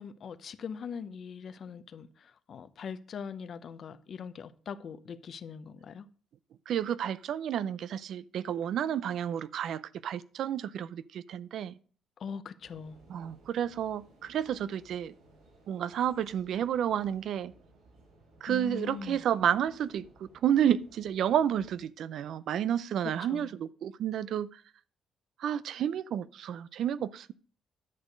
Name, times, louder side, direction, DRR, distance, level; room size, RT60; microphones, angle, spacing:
voice 1, 0.0-6.1 12.2-13.0 18.5-19.2 23.3-23.5, left 6 dB, 55° left, 0.8 m, -41 dB
voice 2, 6.7-11.8 13.1-15.1 15.7-17.5 18.4-24.6 25.4-27.3, right 9 dB, 70° right, 0.5 m, -31 dB
sound 1, 12.6-21.8, right 2 dB, 85° right, 5.6 m, -60 dB
11.0 x 6.5 x 5.2 m
cardioid pair, 90°, 0 cm